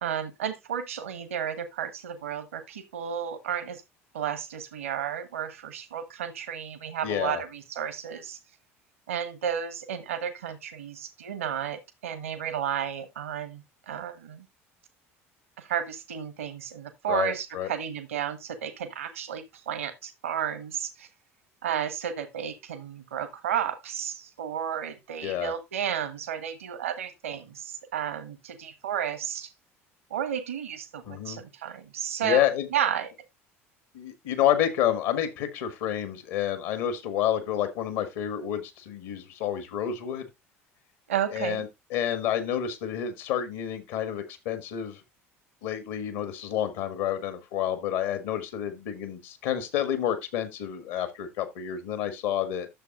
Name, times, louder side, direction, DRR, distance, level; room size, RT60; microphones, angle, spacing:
voice 1, 0.0-3.8 4.1-8.4 9.1-14.5 15.6-21.1 21.6-29.5 30.1-33.1 41.1-41.6, right 9 dB, 75° right, 1.1 m, -32 dB
voice 2, 7.0-7.4 17.1-17.7 25.2-25.5 31.0-31.4 32.2-32.7 33.9-40.3 41.3-45.0 45.6-52.7, left 10 dB, 60° left, 1.7 m, -29 dB
11.5 x 7.1 x 2.5 m
figure-of-eight pair, 65°, 7 cm